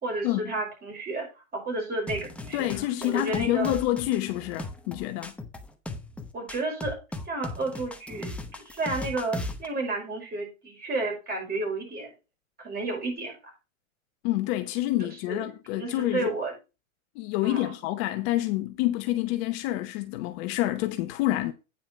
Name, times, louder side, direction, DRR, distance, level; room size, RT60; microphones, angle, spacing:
voice 1, 0.0-2.7 3.0-3.8 6.3-7.0 7.3-12.1 12.6-13.3 15.3-16.5 17.4-17.7, right 2 dB, 20° right, 5.6 m, -32 dB
sound 1, 2.1-9.7, left 2 dB, 5° left, 0.8 m, -37 dB
voice 2, 2.5-5.3 14.2-16.3 17.2-21.5, left 15 dB, 45° left, 0.9 m, -28 dB
9.2 x 5.7 x 4.8 m
hypercardioid pair, 130°, 42 cm